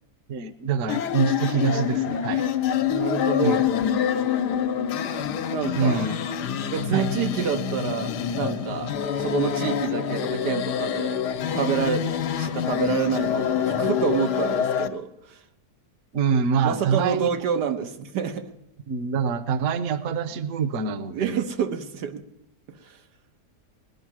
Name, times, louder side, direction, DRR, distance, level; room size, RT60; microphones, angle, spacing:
voice 1, 0.3-2.4 3.4-3.6 5.7-6.2 6.9-7.1 16.1-17.3 18.9-21.4, right 6 dB, 60° right, 12 dB, 1.1 m, -25 dB
sound 1, 0.9-14.9, left 9 dB, 85° left, 1.4 m, -26 dB
voice 2, 2.9-3.6 5.5-6.0 6.7-11.2 11.5-12.1 12.4-15.4 16.6-18.5 21.1-22.2 22.7-23.0, right 7 dB, 90° right, 6 dB, 1.6 m, -28 dB
20.0 x 11.0 x 6.1 m, 0.86 s
omnidirectional pair, 1.7 m